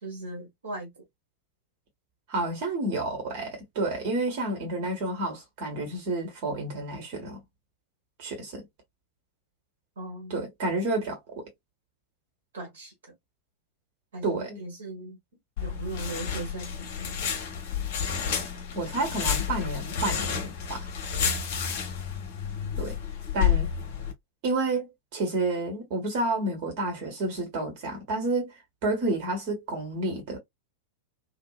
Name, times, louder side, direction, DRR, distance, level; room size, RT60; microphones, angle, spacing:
voice 1, 0.0-1.0 10.0-10.5 12.5-12.9 14.1-15.2 15.6-17.2, right 2 dB, 65° right, 1.3 m, -38 dB
voice 2, 2.3-7.4 8.2-8.6 10.3-11.4 14.2-14.6 18.7-20.9 22.8-23.0 23.3-23.7 24.4-28.5 28.8-30.4, right 2 dB, 45° right, 1.4 m, -30 dB
sound 1, 15.6-24.1, left 7 dB, 50° left, 0.8 m, -30 dB
2.7 x 2.4 x 2.3 m
figure-of-eight pair, 90°, 0 cm